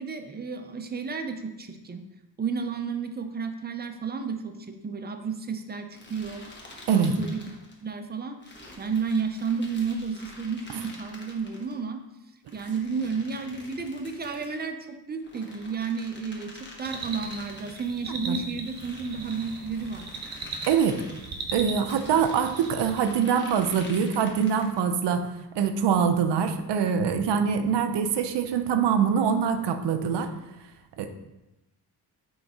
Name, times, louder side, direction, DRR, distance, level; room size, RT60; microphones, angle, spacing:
voice 1, 0.0-2.0 2.4-6.4 6.9-7.5 7.8-8.4 8.8-12.0 12.5-20.1, right 5 dB, 25° right, 6 dB, 0.5 m, -32 dB
sound 1, 5.9-7.8 8.4-11.7 12.5-14.6 15.2-17.9 18.6-21.3 21.9-24.8, left 1 dB, 25° left, 1.1 m, -47 dB
voice 2, 6.9-7.2 18.2-18.4 20.7-21.0 21.5-30.3 31.0-31.1, right 7 dB, 90° right, 8 dB, 0.7 m, -24 dB
sound 2, 16.8-23.2, right 3 dB, 40° right, 1.0 m, -39 dB
6.3 x 3.9 x 4.8 m, 0.98 s
wide cardioid pair, 155°, 40 cm